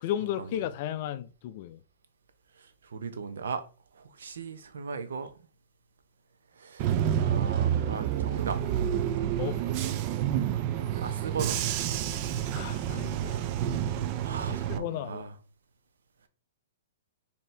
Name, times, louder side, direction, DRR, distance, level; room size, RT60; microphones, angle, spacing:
voice 1, 0.0-1.8 9.4-9.6 12.5-13.4 14.7-15.3, left 12 dB, 45° left, 0.3 m, -34 dB
voice 2, 2.6-3.6 3.9-5.5 6.5-8.6 11.0-11.6 14.2-15.4, right 5 dB, 80° right, 0.6 m, -37 dB
Bus / Engine, 6.8-14.8, right 10 dB, 35° right, 0.3 m, -29 dB
4.3 x 2.7 x 3.2 m
hypercardioid pair, 145°, 0 cm